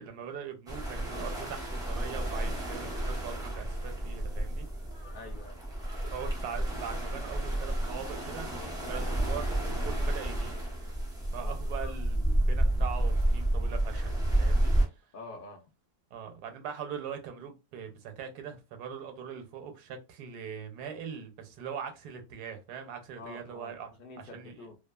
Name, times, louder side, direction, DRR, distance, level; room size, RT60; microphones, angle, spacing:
voice 1, 0.0-4.7 6.1-10.6 11.3-14.7 16.1-23.9 24.3-24.7, right 7 dB, 85° right, 1.2 m, -41 dB
sound 1, 0.7-14.9, right 1 dB, 5° right, 0.3 m, -30 dB
voice 2, 5.1-5.6 11.4-11.6 15.1-15.6 23.2-24.8, left 3 dB, 65° left, 0.5 m, -47 dB
2.7 x 2.4 x 2.2 m
omnidirectional pair, 1.7 m